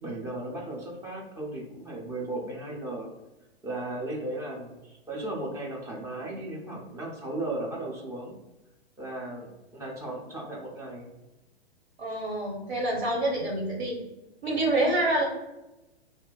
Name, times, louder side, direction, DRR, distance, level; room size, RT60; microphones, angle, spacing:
voice 1, 0.0-3.1 3.6-8.4 9.0-11.0, right 2 dB, 10° right, -1 dB, 0.4 m, -36 dB
voice 2, 12.0-14.0 14.4-15.2, right 1 dB, 80° right, -1 dB, 1.3 m, -27 dB
2.3 x 2.1 x 3.9 m, 0.99 s
figure-of-eight pair, 115°, 31 cm